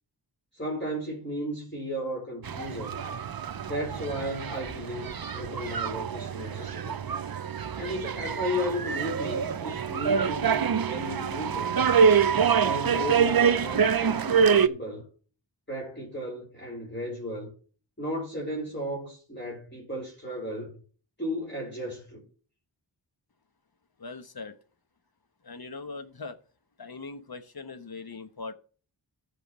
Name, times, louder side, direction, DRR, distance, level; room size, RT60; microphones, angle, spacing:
voice 1, 0.5-3.0 3.7-7.0 7.7-11.8 12.6-15.0 15.7-17.5 18.0-20.8 21.2-22.2, equal, 25° left, 4.1 m, -35 dB
sound 1, 2.5-14.7, right 6 dB, 55° right, 0.6 m, -26 dB
voice 2, 24.0-24.6 25.4-26.4 26.8-28.5, left 4 dB, 55° left, 1.0 m, -40 dB
14.0 x 6.6 x 3.1 m
wide cardioid pair, 40°, 45 cm